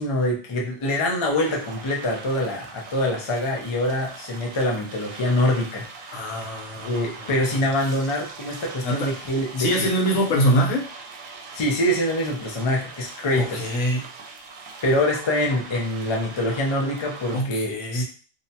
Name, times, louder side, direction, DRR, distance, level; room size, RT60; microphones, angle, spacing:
voice 1, 0.0-5.9 6.8-9.7 11.5-13.7 14.8-18.0, left 1 dB, 50° left, -1 dB, 0.3 m, -24 dB
sound 1, 1.3-17.4, right 4 dB, 85° right, 1.0 m, -41 dB
voice 2, 6.1-7.7 8.8-9.2 9.6-10.9 13.3-14.1 17.3-18.0, equal, 80° left, 0 dB, 1.1 m, -24 dB
2.8 x 2.2 x 2.7 m, 0.38 s
omnidirectional pair, 1.4 m